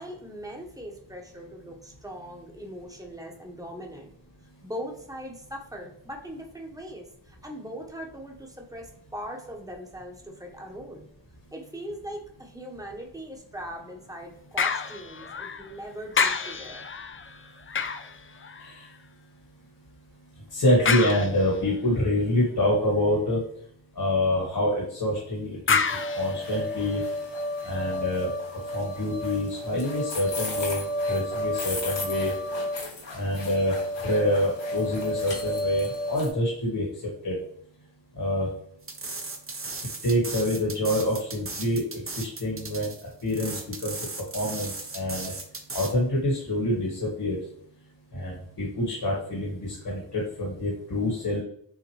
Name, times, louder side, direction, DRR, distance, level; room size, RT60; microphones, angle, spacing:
voice 1, 0.0-4.1 4.6-11.1 11.5-16.8, equal, 10° right, 1 dB, 1.1 m, -40 dB
sound 1, 14.6-15.8 16.1-19.0 20.9-21.8 25.7-27.1 27.7-27.8, left 5 dB, 30° left, 0.4 m, -29 dB
voice 2, 20.5-23.4 24.0-25.8 26.2-27.0 27.6-28.3 28.7-32.3 33.1-33.8 34.0-36.9 37.2-37.3 38.2-38.5 40.0-41.8 42.2-42.9 43.2-43.9 44.3-45.3 45.7-47.4 48.1-51.4, left 1 dB, 55° left, -4 dB, 1.8 m, -26 dB
sound 2, 25.9-36.3, left 1 dB, 75° left, 1.5 m, -32 dB
sound 3, 38.8-45.9, right 3 dB, 30° right, 0.9 m, -37 dB
6.6 x 2.5 x 3.1 m, 0.66 s
cardioid pair, 60°, 46 cm